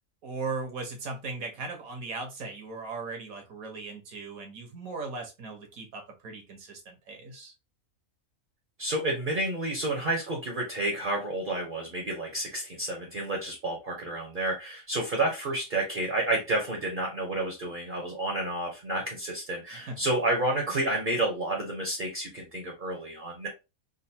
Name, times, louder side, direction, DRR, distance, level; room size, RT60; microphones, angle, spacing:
voice 1, 0.2-7.5 19.7-20.0, right 3 dB, 75° right, 3 dB, 1.4 m, -38 dB
voice 2, 8.8-23.5, right 1 dB, 40° right, 0 dB, 0.9 m, -30 dB
3.9 x 2.5 x 2.7 m, 0.26 s
omnidirectional pair, 1.5 m